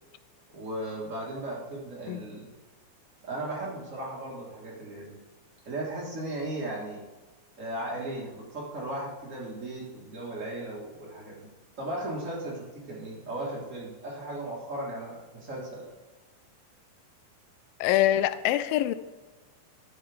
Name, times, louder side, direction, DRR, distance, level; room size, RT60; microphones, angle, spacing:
voice 1, 0.5-2.5 3.2-5.2 5.6-7.0 7.6-11.5 11.8-15.9, right 1 dB, 45° right, 0.9 m, -36 dB
voice 2, 17.8-18.9, left 13 dB, 85° left, 2.2 m, -24 dB
12.5 x 7.3 x 3.4 m
omnidirectional pair, 4.1 m